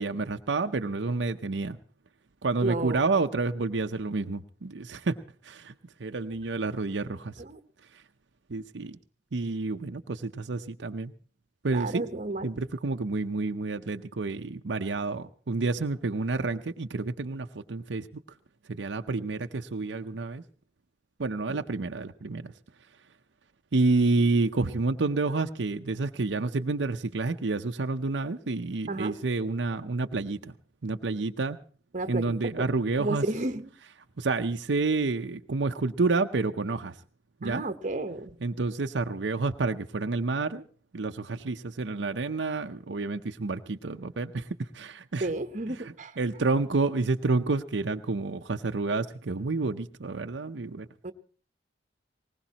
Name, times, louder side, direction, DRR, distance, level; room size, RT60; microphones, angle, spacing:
voice 1, 0.0-1.8 2.4-5.2 5.4-5.7 6.0-7.3 8.5-9.0 9.3-11.1 11.6-12.0 12.4-18.1 18.7-20.4 21.2-22.5 23.7-30.5 30.8-31.6 32.1-33.2 34.2-36.9 37.4-37.6 38.4-40.6 40.9-45.3 46.2-50.9, right 3 dB, 80° right, 6 dB, 0.7 m, -29 dB
voice 2, 2.6-3.0 7.4-7.6 11.7-12.5 21.5-21.6 28.9-29.2 31.9-32.4 33.0-33.7 37.4-38.4 45.2-46.2 51.0-51.1, right 2 dB, 45° right, 10 dB, 1.0 m, -32 dB
20.5 x 19.0 x 2.9 m, 0.43 s
head